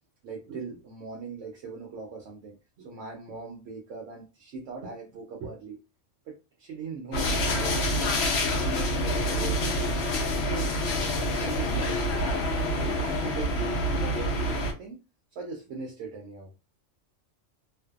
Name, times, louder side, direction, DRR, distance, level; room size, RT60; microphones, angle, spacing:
voice 1, 0.2-5.8 6.3-8.2 8.5-9.8 10.4-10.8 11.3-15.0 15.3-16.5, right 4 dB, 75° right, 1 dB, 0.9 m, -40 dB
sound 1, 7.1-14.7, left 1 dB, 65° left, 0.8 m, -27 dB
2.5 x 2.2 x 2.2 m, 0.29 s
omnidirectional pair, 1.3 m